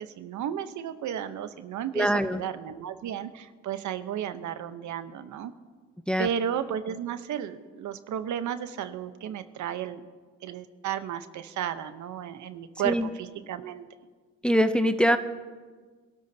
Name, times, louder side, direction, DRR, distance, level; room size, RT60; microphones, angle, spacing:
voice 1, 0.0-5.5 6.2-10.1 10.4-13.8, right 9 dB, 70° right, 10 dB, 0.9 m, -33 dB
voice 2, 1.9-2.4 6.1-6.3 12.8-13.1 14.4-15.2, equal, 5° left, 9 dB, 0.7 m, -23 dB
26.5 x 13.0 x 2.8 m, 1.5 s
cardioid pair, 90°, 30 cm